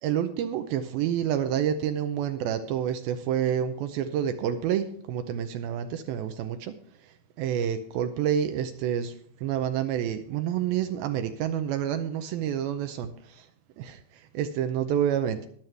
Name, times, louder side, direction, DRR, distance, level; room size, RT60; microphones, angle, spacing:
voice 1, 0.0-6.7 7.0-9.2 9.4-13.5 13.8-15.5, right 9 dB, 85° right, 8 dB, 2.1 m, -28 dB
14.5 x 10.5 x 3.3 m, 0.64 s
omnidirectional pair, 5.0 m